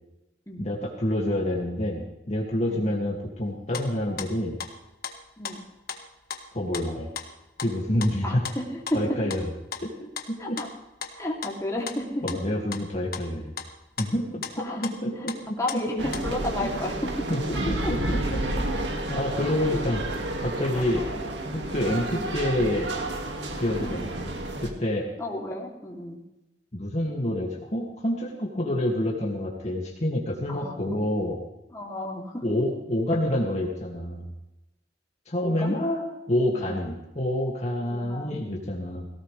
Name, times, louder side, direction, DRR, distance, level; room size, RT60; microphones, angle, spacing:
voice 1, 0.6-4.6 6.5-7.1 7.6-8.4 8.9-9.5 9.8-9.9 10.3-10.6 12.2-13.5 14.0-15.3 17.3-20.0 20.4-21.0 21.5-22.9 23.6-24.3 24.6-25.1 26.7-31.4 32.4-34.3 35.3-39.1, left 1 dB, 40° left, -2 dB, 2.4 m, -28 dB
sound 1, 3.7-4.3 4.6-5.2 5.4-5.6 5.9-6.0 6.3-6.5 6.7-6.9 7.2-7.3 7.6-7.7 8.0-8.6 8.8-10.3 10.6-11.1 11.4-11.6 11.9-12.5 12.7-12.8 13.1-14.1 14.4-14.5 14.8-15.0 15.3-15.8 16.1-16.3, left 6 dB, 60° left, 1.6 m, -36 dB
voice 2, 8.2-9.2 10.4-10.7 11.2-12.2 14.6-14.9 15.6-17.3 17.8-17.9 19.4-20.0 20.7-21.2 22.0-22.3 23.8-24.2 25.2-26.2 30.5-31.0 31.7-32.4 35.4-35.7 36.5-36.7 37.9-38.6, left 1 dB, 20° left, -2 dB, 3.0 m, -33 dB
sound 2, 16.0-24.7, right 1 dB, 85° right, 2.2 m, -31 dB
18.0 x 17.5 x 3.4 m, 0.97 s
head